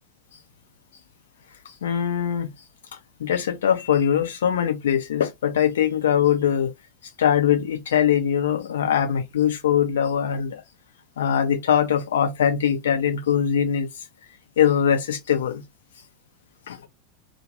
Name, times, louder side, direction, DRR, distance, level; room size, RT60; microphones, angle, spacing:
voice 1, 1.8-2.5 3.2-6.7 7.2-10.5 11.2-13.9 14.6-15.6 16.7-16.8, left 9 dB, 65° left, 0.5 m, -22 dB
2.2 x 2.2 x 2.8 m
figure-of-eight pair, 85°, 0 cm